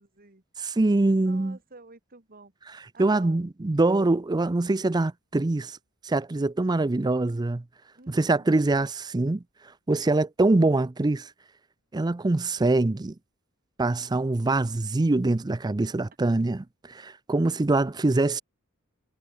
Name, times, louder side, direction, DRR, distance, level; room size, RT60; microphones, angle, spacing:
voice 1, 0.0-0.4 1.1-3.4 8.0-8.6 15.8-15.9, right 3 dB, 45° right, 2.5 m, -51 dB
voice 2, 0.6-1.6 3.0-5.8 6.0-7.6 8.1-9.4 9.9-11.3 11.9-13.1 13.8-18.4, right 2 dB, 20° right, 0.5 m, -24 dB
head